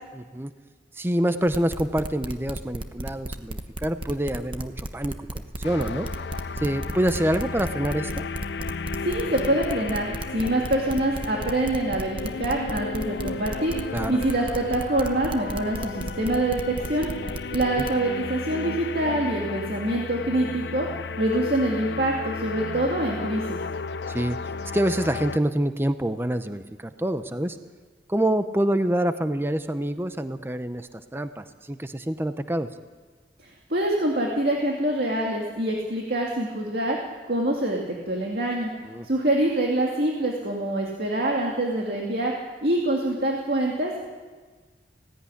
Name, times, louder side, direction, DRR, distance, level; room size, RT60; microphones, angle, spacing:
voice 1, 0.1-0.5 0.9-5.2 5.6-6.1 6.6-8.2 13.9-14.2 17.7-17.8 24.1-24.4 24.7-27.6 28.1-32.7 38.8-39.1, right 1 dB, 15° right, 10 dB, 0.6 m, -26 dB
sound 1, 1.5-17.9, right 1 dB, 30° right, 1.1 m, -34 dB
sound 2, 5.6-25.4, left 4 dB, 80° left, 0.6 m, -34 dB
voice 2, 9.0-17.1 17.5-20.9 21.2-23.6 33.4-37.0 37.3-38.7 39.0-42.3 42.6-44.0, right 1 dB, 60° right, -1 dB, 2.4 m, -25 dB
17.0 x 16.0 x 9.9 m, 1.4 s
head